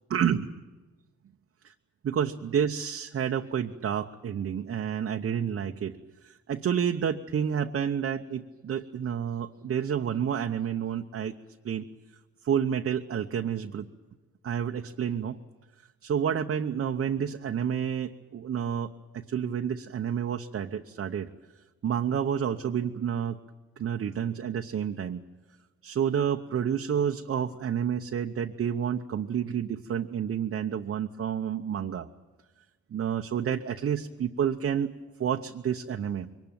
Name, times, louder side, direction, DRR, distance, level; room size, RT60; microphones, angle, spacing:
voice 1, 0.1-0.5 2.0-6.0 6.2-11.3 11.6-11.8 12.4-13.9 14.4-15.4 16.0-21.3 21.8-23.4 23.8-25.2 25.8-32.1 32.9-34.9 35.2-36.3, right 8 dB, 45° right, 3 dB, 0.9 m, -29 dB
23.0 x 19.5 x 9.1 m, 1.3 s
cardioid pair, 90°, 30 cm